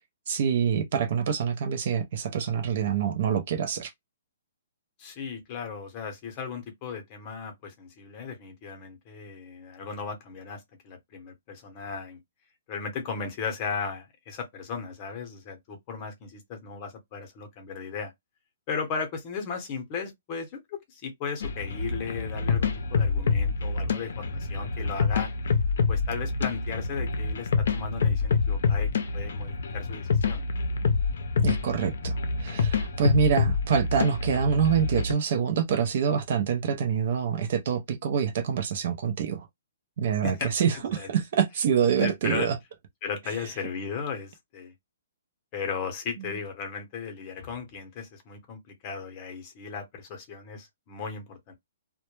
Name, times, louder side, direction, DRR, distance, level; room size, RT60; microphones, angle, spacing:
voice 1, 0.3-3.9 31.4-39.5 40.0-42.5, right 7 dB, 50° right, 0.5 m, -26 dB
voice 2, 5.0-12.2 12.7-18.1 18.7-25.3 25.9-28.9 29.1-30.5 40.2-40.5 40.9-41.1 42.0-42.5 43.0-44.7 45.5-51.5, left 5 dB, 30° left, 0.8 m, -36 dB
sound 1, 21.4-35.1, left 4 dB, 65° left, 0.5 m, -27 dB
2.1 x 2.0 x 3.0 m
hypercardioid pair, 165°, 0 cm